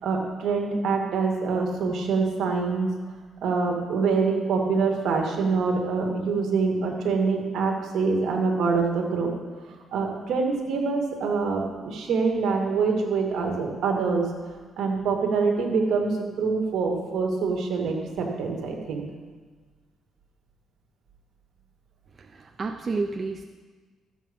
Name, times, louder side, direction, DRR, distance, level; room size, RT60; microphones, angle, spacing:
voice 1, 0.0-2.9 3.4-9.3 9.7-19.0, right 4 dB, 75° right, 2 dB, 2.2 m, -25 dB
voice 2, 22.2-23.4, right 3 dB, 40° right, 6 dB, 0.6 m, -30 dB
14.0 x 7.8 x 5.5 m, 1.4 s
cardioid pair, 90°, 0 cm